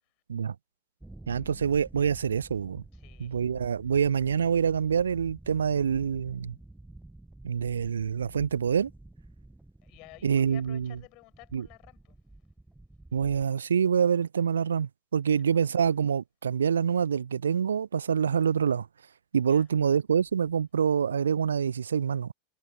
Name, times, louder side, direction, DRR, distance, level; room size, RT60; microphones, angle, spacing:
sound 1, 1.0-13.4, right 2 dB, 5° right, 1.3 m, -50 dB
voice 1, 1.3-2.8 3.2-6.5 7.4-8.9 10.2-10.9 11.5-11.6 13.1-18.9 19.3-22.3, right 7 dB, 70° right, 0.4 m, -26 dB
voice 2, 2.9-3.4 9.8-12.2 15.4-15.6 19.4-19.7, left 26 dB, 40° left, 7.7 m, -53 dB
figure-of-eight pair, 90°, 0 cm